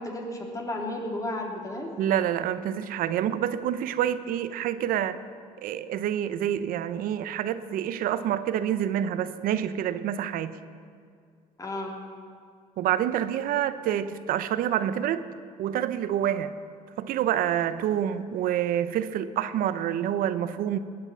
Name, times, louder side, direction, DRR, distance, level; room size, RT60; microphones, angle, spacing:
voice 1, 0.0-1.9 11.6-11.9, left 1 dB, 20° left, 0 dB, 3.1 m, -33 dB
voice 2, 2.0-5.2 5.6-10.6 12.8-15.3 15.6-16.5 17.0-20.8, right 10 dB, 70° right, 13 dB, 0.8 m, -27 dB
20.0 x 9.0 x 7.1 m, 2.2 s
supercardioid pair, 80°, 15 cm